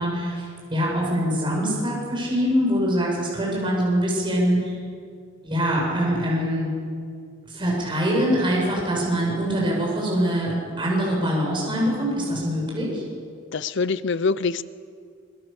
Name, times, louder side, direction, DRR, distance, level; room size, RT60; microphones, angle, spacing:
voice 1, 0.0-4.8 5.4-6.7 7.5-13.0, equal, 25° right, -3 dB, 7.1 m, -24 dB
voice 2, 13.5-14.6, left 4 dB, 65° left, 15 dB, 0.7 m, -24 dB
26.0 x 24.0 x 7.1 m, 2.2 s
head